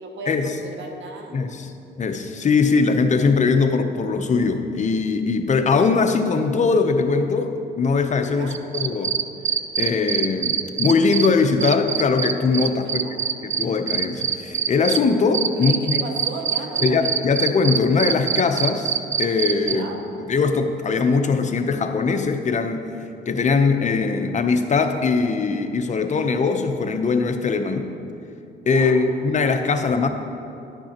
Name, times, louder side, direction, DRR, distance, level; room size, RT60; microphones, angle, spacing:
voice 1, 0.0-1.4 8.2-8.6 12.5-13.2 15.5-17.1 19.6-20.0 28.7-29.0, right 3 dB, 70° right, 3 dB, 1.2 m, -36 dB
voice 2, 1.3-1.7 2.0-9.1 9.8-13.0 13.6-16.0 16.8-19.9 20.3-22.9 23.3-27.9 28.7-30.1, left 4 dB, 35° left, 7 dB, 0.7 m, -21 dB
sound 1, 8.5-11.3 11.6-15.0 15.3-19.8, right 8 dB, 40° right, 0.4 m, -23 dB
11.0 x 9.2 x 2.9 m, 2.8 s
cardioid pair, 90°, 20 cm